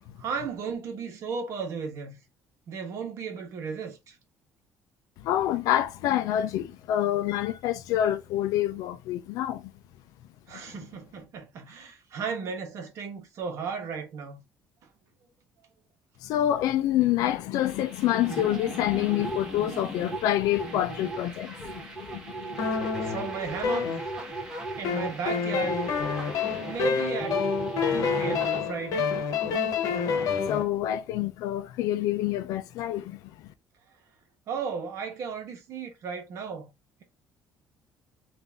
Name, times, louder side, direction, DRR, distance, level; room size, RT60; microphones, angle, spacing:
voice 1, 0.2-2.2 2.7-4.2 10.5-14.4 23.0-24.0 24.8-25.7 26.6-27.4 27.9-29.1 34.5-36.7, right 6 dB, 55° right, 1.3 m, -35 dB
voice 2, 5.2-9.7 16.2-22.8 30.5-33.5, left 12 dB, 85° left, 0.5 m, -27 dB
sound 1, 17.6-28.6, right 3 dB, 10° right, 1.1 m, -37 dB
sound 2, 22.6-24.4 24.8-30.6, left 6 dB, 70° left, 1.0 m, -28 dB
3.9 x 2.7 x 3.5 m
cardioid pair, 150°, 6 cm